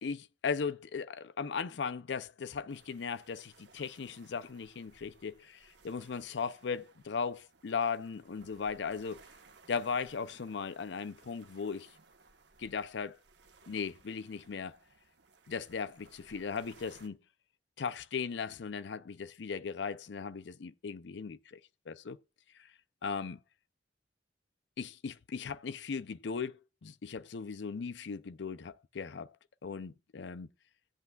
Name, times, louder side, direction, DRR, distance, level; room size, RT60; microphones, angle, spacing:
voice 1, 0.0-9.2 9.7-11.9 12.6-13.2 13.7-14.8 15.5-17.2 17.8-21.6 21.9-22.2 23.0-23.4 24.8-29.3 29.6-30.5, left 5 dB, 70° left, 0.5 m, -37 dB
sound 1, 2.7-17.1, right 4 dB, 70° right, 1.2 m, -62 dB
17.0 x 8.1 x 2.3 m
head